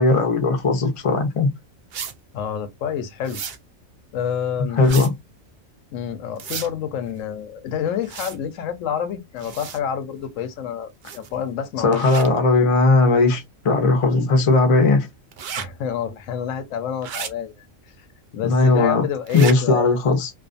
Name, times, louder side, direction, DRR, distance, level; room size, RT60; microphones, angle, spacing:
voice 1, 0.0-1.5 4.8-5.1 11.8-15.1 18.4-19.0 19.3-20.3, left 3 dB, 40° left, 0.5 m, -17 dB
sound 1, 1.9-2.1 3.2-3.6 4.8-5.1 6.4-6.7 8.0-8.4 9.4-9.8 11.0-11.3 11.9-12.3 15.3-15.6 17.0-17.3 19.3-19.5, right 7 dB, 75° right, 0.4 m, -32 dB
voice 2, 2.3-3.4 4.1-4.8 5.9-12.0 15.6-17.5 18.3-19.9, left 8 dB, 75° left, 0.9 m, -28 dB
2.4 x 2.4 x 2.4 m
omnidirectional pair, 1.4 m